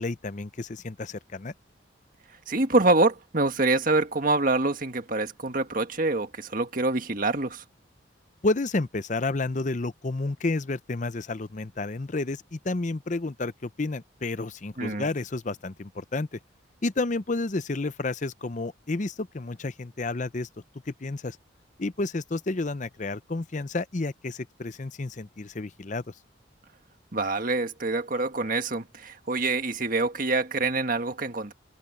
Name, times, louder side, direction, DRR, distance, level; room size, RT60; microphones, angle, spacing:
voice 1, 0.0-1.5 8.4-16.4 16.8-20.5 20.9-21.4 21.8-26.1, left 2 dB, 40° left, 0.6 m, -30 dB
voice 2, 2.5-7.6 14.8-15.1 27.1-31.5, right 2 dB, 45° right, 1.7 m, -25 dB
head